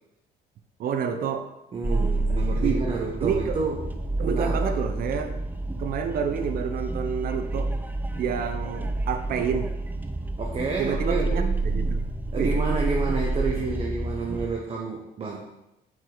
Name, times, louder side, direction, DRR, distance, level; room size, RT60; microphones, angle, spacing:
voice 1, 0.8-1.5 2.6-2.8 3.2-3.6 4.2-5.4 5.8-7.7 8.2-9.7 10.8-12.1 12.4-12.6, right 7 dB, 60° right, 7 dB, 0.9 m, -29 dB
voice 2, 1.7-3.8 4.2-4.7 10.4-11.5 12.3-15.5, right 4 dB, 35° right, -1 dB, 1.0 m, -29 dB
sound 1, 1.8-14.5, right 2 dB, 10° right, 0.6 m, -28 dB
7.6 x 4.9 x 4.0 m, 0.90 s
cardioid pair, 110°, 17 cm